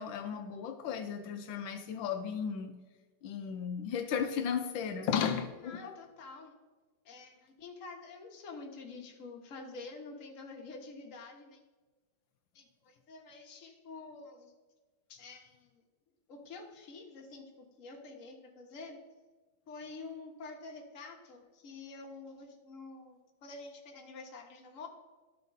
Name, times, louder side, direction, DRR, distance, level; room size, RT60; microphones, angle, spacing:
voice 1, 0.0-2.7 3.2-6.0, left 7 dB, 85° left, 6 dB, 1.4 m, -35 dB
voice 2, 5.6-6.5 7.0-11.6 12.5-14.5 15.1-15.7 16.3-19.0 19.7-24.9, left 3 dB, 45° left, 2 dB, 1.4 m, -48 dB
12.5 x 4.5 x 3.9 m, 1.3 s
omnidirectional pair, 2.1 m